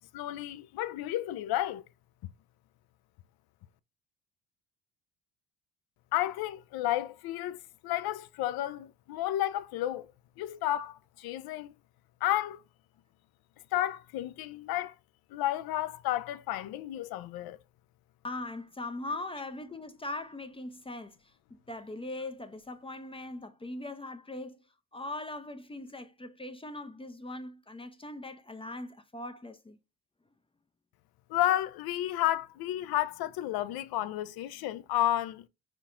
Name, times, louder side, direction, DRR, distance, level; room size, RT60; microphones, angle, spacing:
voice 1, 0.1-1.8 6.1-10.1 10.4-11.7 12.2-12.6 13.7-14.9 15.3-17.6 31.3-35.4, left 14 dB, 60° left, 0.5 m, -32 dB
voice 2, 18.2-24.6 24.9-29.8, left 2 dB, 15° left, 0.5 m, -40 dB
4.4 x 3.7 x 2.4 m
supercardioid pair, 70°, 41 cm